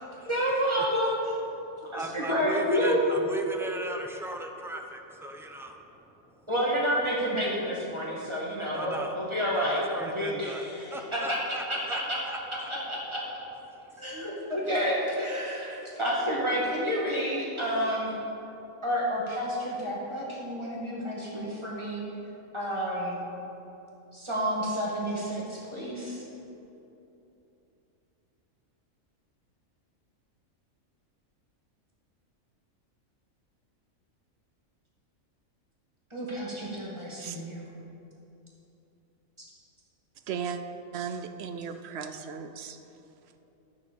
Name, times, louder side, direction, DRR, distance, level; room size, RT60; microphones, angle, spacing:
voice 1, 0.2-1.6 1.9-3.0 6.5-11.4 11.7-12.2 12.7-13.2 14.0-18.1 18.8-22.0 22.5-23.2 24.1-26.2 36.1-37.6, equal, 20° right, -6 dB, 2.3 m, -29 dB
voice 2, 1.6-6.5 8.7-9.1 9.5-10.7 10.9-12.0 12.3-12.7 13.7-14.0, right 1 dB, 5° right, 3 dB, 0.5 m, -38 dB
voice 3, 40.3-40.6 40.9-42.8, right 7 dB, 60° right, 8 dB, 0.8 m, -36 dB
11.0 x 6.5 x 6.9 m, 2.9 s
omnidirectional pair, 1.4 m